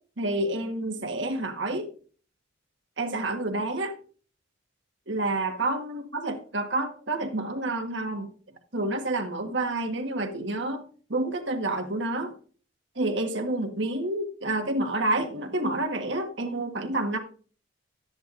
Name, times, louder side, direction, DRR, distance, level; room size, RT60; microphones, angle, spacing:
voice 1, 0.2-1.9 3.0-3.9 5.1-8.3 8.7-12.3 12.9-17.2, right 2 dB, 65° right, 5 dB, 1.4 m, -29 dB
13.0 x 10.0 x 2.6 m, 0.42 s
head